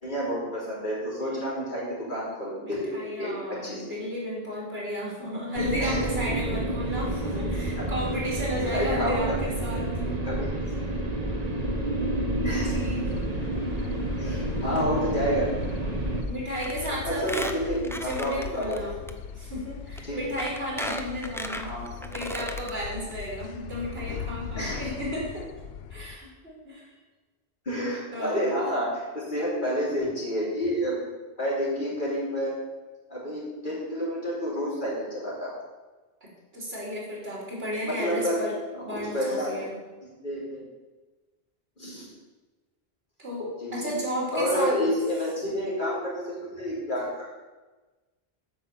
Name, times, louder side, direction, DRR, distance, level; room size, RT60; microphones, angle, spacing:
voice 1, 0.0-3.9 5.8-6.0 7.7-7.9 8.5-9.3 10.2-10.5 12.4-12.7 14.2-15.5 17.0-18.9 20.0-20.2 21.6-21.9 24.5-24.9 27.7-28.9 29.1-32.5 33.1-35.6 37.8-38.4 38.7-39.6 40.2-40.7 41.8-42.1 43.6-43.9 44.3-47.3, equal, 50° left, -7 dB, 3.6 m, -29 dB
voice 2, 2.5-9.9 12.6-13.1 16.3-17.5 18.0-18.9 19.3-21.7 22.0-25.5 25.9-26.9 28.1-28.7 36.2-38.5 38.8-39.7 43.2-44.8, equal, 75° right, -4 dB, 3.3 m, -33 dB
sound 1, 5.5-16.2, right 1 dB, 40° right, 1.2 m, -29 dB
sound 2, 12.4-26.2, left 7 dB, 75° left, 0.8 m, -39 dB
Squeak, 16.6-16.9 17.2-18.8 19.1-19.2 20.0-20.1 20.4-22.7 23.1-23.2 23.4-23.5, equal, 5° left, 0.5 m, -35 dB
8.6 x 5.5 x 7.5 m, 1.2 s
omnidirectional pair, 1.0 m